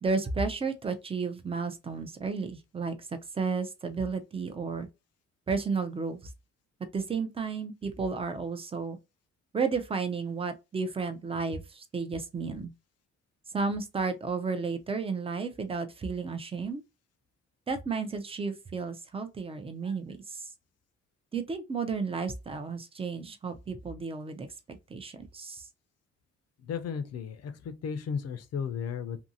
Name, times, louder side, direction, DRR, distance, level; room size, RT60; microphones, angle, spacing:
voice 1, 0.0-4.9 5.5-6.2 6.8-9.0 9.5-12.7 13.5-16.8 17.7-20.5 21.3-25.7, right 4 dB, 20° right, 0.5 m, -33 dB
voice 2, 26.6-29.2, left 6 dB, 55° left, 0.5 m, -34 dB
2.7 x 2.6 x 2.6 m
cardioid pair, 90°, 30 cm